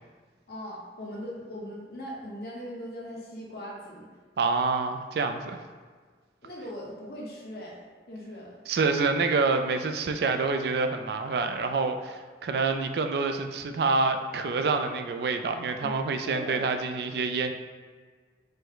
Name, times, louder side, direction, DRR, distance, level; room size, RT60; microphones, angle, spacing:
voice 1, 0.5-4.1 6.4-7.8 8.1-8.5 15.8-15.9 16.2-16.6, equal, 60° left, -3 dB, 1.0 m, -39 dB
voice 2, 4.4-5.6 8.7-17.5, right 4 dB, 65° right, 7 dB, 0.3 m, -27 dB
5.3 x 2.1 x 3.7 m, 1.5 s
head